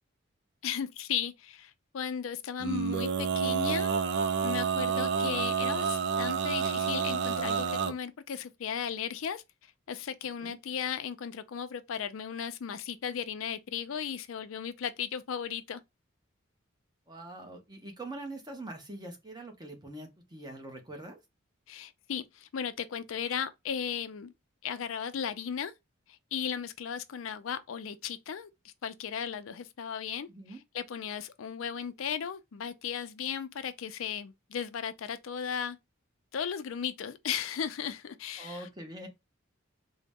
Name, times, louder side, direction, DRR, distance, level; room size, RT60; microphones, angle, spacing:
voice 1, 0.6-3.9 4.4-9.4 9.9-15.8 21.7-24.3 24.6-25.7 26.3-35.8 36.3-38.7, left 8 dB, 80° left, 0.4 m, -36 dB
Male singing, 2.6-7.9, right 6 dB, 55° right, 0.4 m, -29 dB
voice 2, 17.1-21.2 30.3-30.6 38.4-39.1, right 2 dB, 20° right, 0.8 m, -43 dB
3.8 x 2.1 x 3.5 m
head